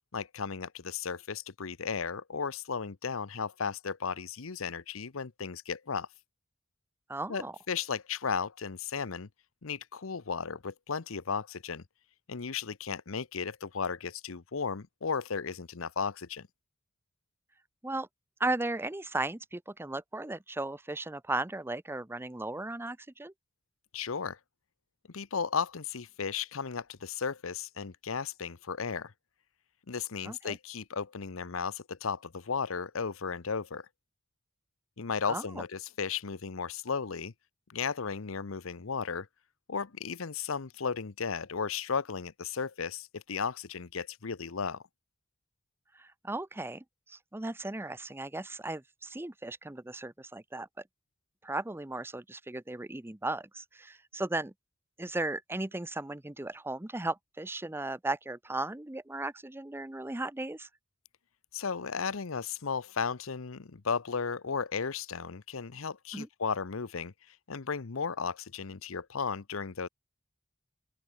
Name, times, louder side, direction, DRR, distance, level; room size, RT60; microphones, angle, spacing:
voice 1, 0.1-6.1 7.3-9.3 9.6-11.8 12.3-16.5 23.9-24.4 25.1-29.1 29.9-33.9 35.0-37.3 37.7-39.3 39.7-44.8 61.5-69.9, left 5 dB, 75° left, 0.8 m, -35 dB
voice 2, 7.1-7.5 17.8-18.1 18.4-23.3 30.2-30.6 35.3-35.6 46.0-50.7 51.4-54.5 55.0-60.7 66.1-66.3, right 2 dB, 10° right, 0.7 m, -36 dB
open air
head